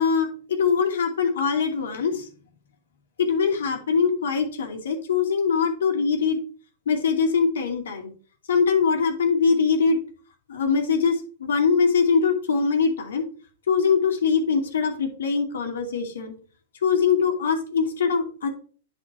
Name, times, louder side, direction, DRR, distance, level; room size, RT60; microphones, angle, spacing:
voice 1, 0.0-2.3 3.2-6.4 6.9-8.1 8.5-10.0 10.5-13.2 13.7-16.3 16.8-18.5, left 5 dB, 85° left, 2 dB, 2.4 m, -22 dB
10.0 x 4.4 x 4.6 m, 0.39 s
hypercardioid pair, 130°, 0 cm